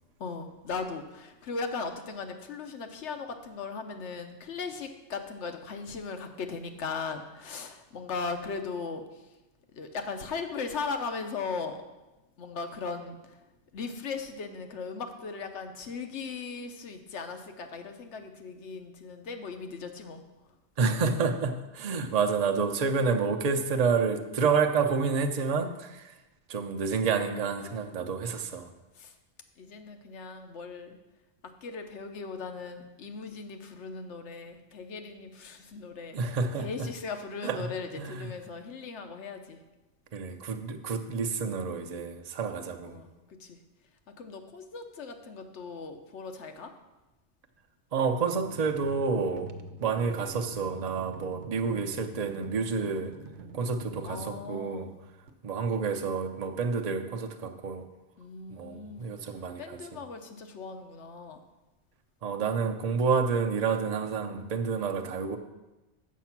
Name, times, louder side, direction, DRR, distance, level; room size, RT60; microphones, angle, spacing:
voice 1, 0.2-9.0 9.7-11.8 12.4-13.2 13.7-20.2 28.2-28.4 29.0-29.1 29.6-31.0 31.6-36.2 36.6-39.6 42.9-43.6 44.2-46.7 54.0-54.9 58.2-59.1 59.6-61.4, left 4 dB, 80° left, 6 dB, 1.2 m, -38 dB
voice 2, 20.8-26.2 26.5-28.7 36.1-36.9 37.4-38.4 40.1-43.0 47.9-49.5 49.8-53.1 53.5-54.9 55.4-57.9 58.5-60.0 62.2-65.4, right 5 dB, 40° right, 6 dB, 0.7 m, -29 dB
sound 1, 48.4-55.3, right 2 dB, 85° right, 1.0 m, -46 dB
7.3 x 7.1 x 5.9 m, 1.1 s
omnidirectional pair, 1.2 m